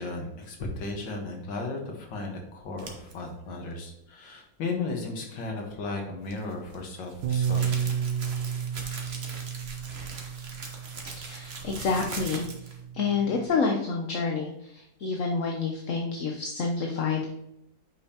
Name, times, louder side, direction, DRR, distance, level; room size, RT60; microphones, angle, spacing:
voice 1, 0.0-7.6, left 3 dB, 85° left, 1 dB, 2.1 m, -35 dB
sound 1, 2.8-3.1 6.2-12.8, right 3 dB, 40° right, 1.1 m, -41 dB
Bass guitar, 7.2-13.5, right 8 dB, 85° right, 1.4 m, -32 dB
voice 2, 11.2-12.5 12.9-17.3, left 4 dB, 55° left, 1 dB, 0.9 m, -28 dB
8.6 x 5.4 x 2.9 m, 0.84 s
omnidirectional pair, 2.0 m